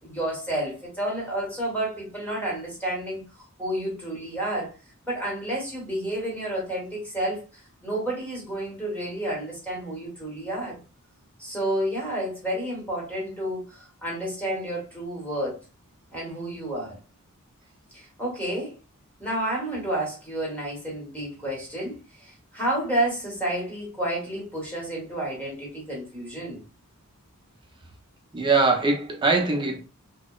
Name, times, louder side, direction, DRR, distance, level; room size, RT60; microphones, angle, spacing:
voice 1, 0.0-4.7 5.0-7.4 7.8-10.8 11.4-15.6 16.1-17.0 17.9-18.7 19.2-26.6, right 1 dB, 5° left, 1.0 m, -30 dB
voice 2, 28.3-29.8, right 3 dB, 20° right, 0.5 m, -22 dB
2.8 x 2.0 x 2.2 m
head